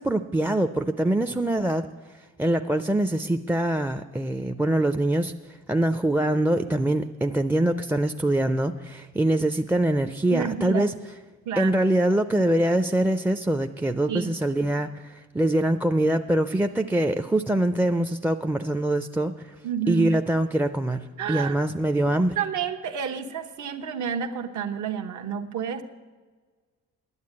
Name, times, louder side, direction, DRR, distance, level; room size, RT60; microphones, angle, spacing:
voice 1, 0.0-1.9 2.4-5.3 5.7-10.9 11.6-19.6 19.9-22.4, right 1 dB, 5° right, 7 dB, 0.4 m, -24 dB
voice 2, 10.3-10.9 11.4-11.8 14.1-14.4 19.6-20.2 21.2-21.6 22.1-25.8, right 8 dB, 75° right, 5 dB, 1.1 m, -30 dB
9.6 x 9.0 x 8.5 m, 1.4 s
cardioid pair, 90°, 30 cm